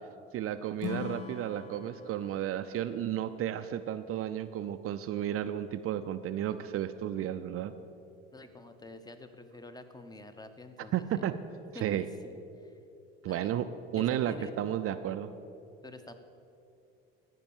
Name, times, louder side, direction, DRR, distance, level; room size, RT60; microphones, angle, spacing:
voice 1, 0.3-7.7 10.9-11.3 11.8-12.1 13.2-13.7 13.9-15.3, right 11 dB, 45° right, 10 dB, 0.5 m, -33 dB
Acoustic guitar / Strum, 0.8-4.1, left 8 dB, 75° left, 0.9 m, -43 dB
voice 2, 8.3-11.3 11.7-12.8 13.2-13.5 14.0-14.6 15.8-16.1, left 2 dB, 10° left, 9 dB, 1.0 m, -48 dB
14.0 x 5.3 x 7.2 m, 2.7 s
hypercardioid pair, 75°, 31 cm